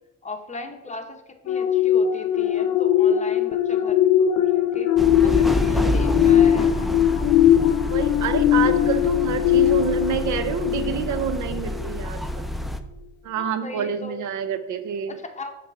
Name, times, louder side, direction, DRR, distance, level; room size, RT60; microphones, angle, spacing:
voice 1, 0.2-1.2 1.4-4.1 4.4-4.9 5.2-6.8 13.4-14.2 15.1-15.5, left 3 dB, 25° left, 5 dB, 0.9 m, -37 dB
sound 1, 1.5-11.3 11.8-12.0, left 10 dB, 90° left, 0.6 m, -20 dB
sound 2, 5.0-12.8, left 1 dB, ahead, 0.4 m, -28 dB
voice 2, 5.7-6.0 7.9-12.5 13.2-15.2, right 8 dB, 75° right, 11 dB, 0.7 m, -28 dB
5.8 x 3.4 x 5.5 m, 0.95 s
cardioid pair, 90°, 30 cm